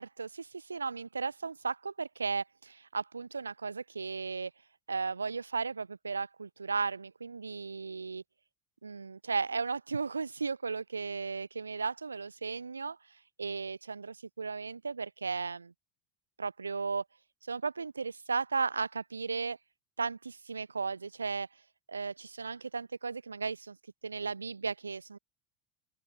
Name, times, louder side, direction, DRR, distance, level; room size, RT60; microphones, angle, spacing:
voice 1, 0.0-4.5 4.9-8.2 8.8-13.0 13.4-15.7 16.4-17.0 17.5-19.6 20.0-21.5 21.9-23.8 24.0-25.2, right 4 dB, 80° right, 1.9 m, -35 dB
open air
figure-of-eight pair, 75°, 0 cm